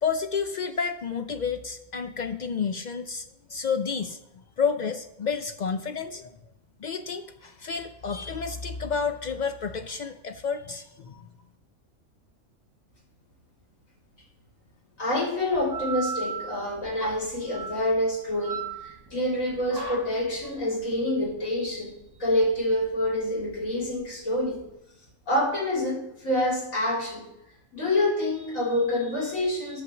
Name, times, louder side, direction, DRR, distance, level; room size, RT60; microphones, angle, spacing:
voice 1, 0.0-4.2 4.6-6.3 6.8-11.3, left 6 dB, 70° left, 8 dB, 0.4 m, -30 dB
voice 2, 15.0-21.9 22.2-24.6 25.3-27.2 27.7-29.8, left 1 dB, 85° left, -4 dB, 4.1 m, -27 dB
sound 1, 15.5-24.7, right 4 dB, 20° right, 0.9 m, -38 dB
9.9 x 5.8 x 7.0 m, 0.88 s
omnidirectional pair, 1.4 m